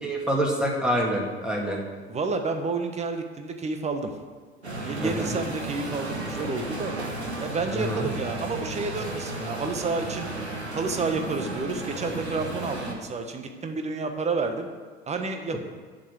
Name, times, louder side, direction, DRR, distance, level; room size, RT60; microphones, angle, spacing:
voice 1, 0.0-1.8 5.0-5.3 7.7-8.1, right 1 dB, 5° right, -2 dB, 2.2 m, -26 dB
voice 2, 2.0-4.1 4.8-6.9 7.4-10.3 10.7-14.7 15.1-15.6, right 3 dB, 20° right, 6 dB, 1.3 m, -30 dB
sound 1, 4.6-13.0, right 2 dB, 85° right, 1.4 m, -34 dB
7.4 x 6.7 x 8.1 m, 1.5 s
figure-of-eight pair, 75°, 32 cm